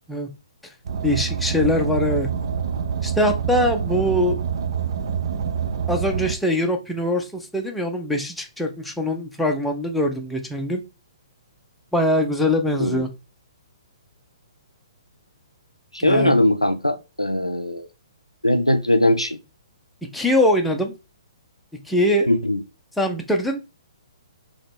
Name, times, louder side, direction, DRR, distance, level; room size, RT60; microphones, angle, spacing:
Car, 0.9-6.3, right 7 dB, 55° right, 0.5 m, -26 dB
voice 1, 1.0-2.3 3.0-4.4 5.9-10.8 11.9-13.1 16.0-16.4 20.1-20.9 21.9-22.3 23.0-23.6, left 1 dB, ahead, 0.5 m, -22 dB
voice 2, 15.9-17.9 18.4-19.4 22.3-22.6, left 1 dB, 90° left, 0.5 m, -20 dB
3.8 x 3.0 x 3.5 m
figure-of-eight pair, 125°, 3 cm